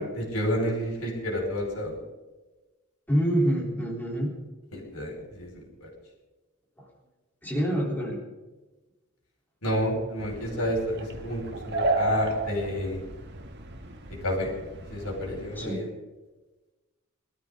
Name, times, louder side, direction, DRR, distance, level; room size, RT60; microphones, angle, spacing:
voice 1, 0.0-2.0 4.7-5.9 9.6-13.0 14.2-14.6 14.9-15.9, equal, 85° left, -1 dB, 5.3 m, -30 dB
voice 2, 3.1-4.3 6.8-6.9 7.4-8.2 15.6-15.8, equal, 10° left, -4 dB, 3.7 m, -26 dB
sound 1, 10.2-15.8, right 3 dB, 50° right, 1.6 m, -33 dB
23.0 x 13.5 x 3.9 m, 1.2 s
head